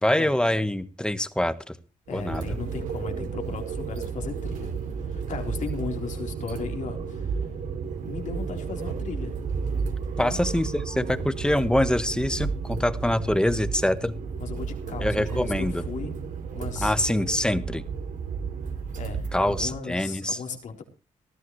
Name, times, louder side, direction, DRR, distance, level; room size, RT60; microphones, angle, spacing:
voice 1, 0.0-1.8 2.1-2.6 10.2-14.2 15.0-15.8 16.8-17.8 19.3-20.4, left 1 dB, 5° left, 12 dB, 1.3 m, -25 dB
voice 2, 2.1-4.7 5.0-7.4 8.0-9.3 10.2-10.4 14.4-16.2 16.5-17.2 19.0-20.8, left 5 dB, 70° left, 3 dB, 4.0 m, -36 dB
sound 1, 2.1-19.7, right 5 dB, 85° right, 2.8 m, -32 dB
19.0 x 14.0 x 3.2 m, 0.33 s
cardioid pair, 95°, 13 cm